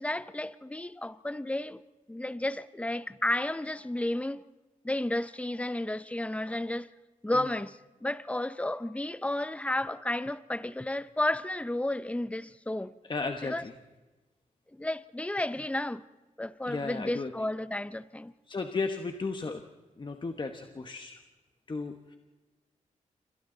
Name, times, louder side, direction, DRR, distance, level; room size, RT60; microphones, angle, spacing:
voice 1, 0.0-1.8 2.1-4.4 4.8-6.9 7.2-12.9 13.4-13.6 14.7-16.0 16.4-18.3, left 1 dB, 10° left, 0.8 m, -32 dB
voice 2, 13.1-13.7 16.7-17.3 18.5-19.6 20.0-21.2 21.7-22.2, left 3 dB, 35° left, 1.4 m, -34 dB
28.0 x 25.0 x 4.0 m
cardioid pair, 85°, 14 cm